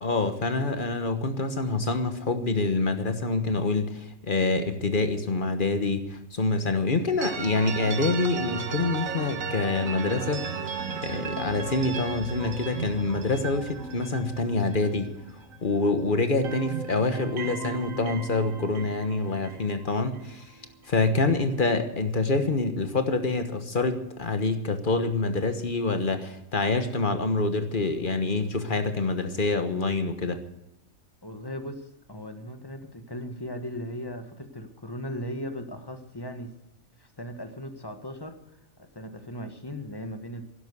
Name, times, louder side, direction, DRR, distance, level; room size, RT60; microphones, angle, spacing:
voice 1, 0.0-10.4 11.0-15.1 15.6-20.4 20.9-30.4, left 3 dB, 40° left, 9 dB, 1.3 m, -26 dB
sound 1, 7.2-15.9 16.2-20.3, right 5 dB, 80° right, 1.7 m, -36 dB
voice 2, 21.3-21.7 31.2-36.5 37.0-38.4 38.8-40.4, equal, 20° left, 7 dB, 1.3 m, -38 dB
11.5 x 11.5 x 8.1 m, 0.91 s
omnidirectional pair, 1.4 m